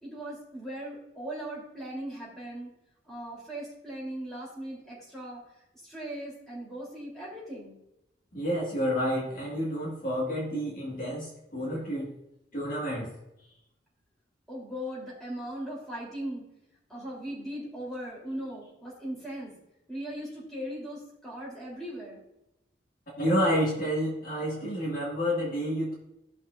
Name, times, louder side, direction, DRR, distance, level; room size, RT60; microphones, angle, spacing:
voice 1, 0.0-2.7 3.1-5.4 5.8-7.8 14.5-16.4 16.9-19.6 19.9-22.2, right 1 dB, ahead, -7 dB, 3.6 m, -38 dB
voice 2, 8.3-12.1 12.5-13.1 23.2-25.9, equal, 45° left, -4 dB, 1.9 m, -29 dB
15.0 x 5.9 x 2.6 m, 0.87 s
head